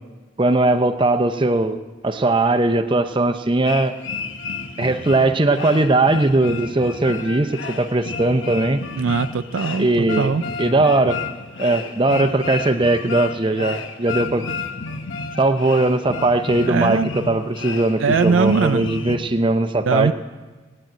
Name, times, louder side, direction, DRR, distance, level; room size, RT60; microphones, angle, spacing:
voice 1, 0.4-1.8 2.0-3.9 4.8-8.8 9.8-10.3 10.6-11.2 11.6-14.4 15.4-20.1, right 2 dB, 25° right, 8 dB, 0.6 m, -19 dB
sound 1, 3.7-19.2, left 4 dB, 75° left, 1.2 m, -32 dB
voice 2, 8.9-10.4 16.6-17.1 18.0-18.9 19.9-20.1, right 5 dB, 75° right, 11 dB, 0.4 m, -20 dB
18.0 x 8.8 x 9.0 m, 1.3 s
head